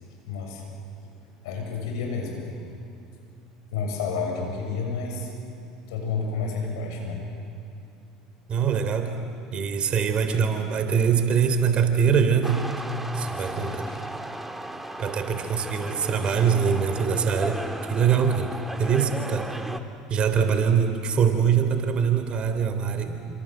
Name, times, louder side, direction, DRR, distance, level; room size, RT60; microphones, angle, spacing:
voice 1, 0.2-0.6 1.0-1.1 1.4-2.6 3.7-5.3 5.9-7.2 13.1-14.0 15.3-15.5 15.9-16.0 22.9-23.3, left 4 dB, 70° left, 1 dB, 7.5 m, -31 dB
voice 2, 8.5-9.2 9.5-12.7 13.1-13.9 15.0-17.6 17.9-18.5 18.8-19.5 20.1-23.1, right 7 dB, 40° right, 8 dB, 3.3 m, -23 dB
sound 1, 12.4-19.8, right 1 dB, 5° right, 2.0 m, -35 dB
28.0 x 26.5 x 7.9 m, 2.6 s
hypercardioid pair, 75°, 3 cm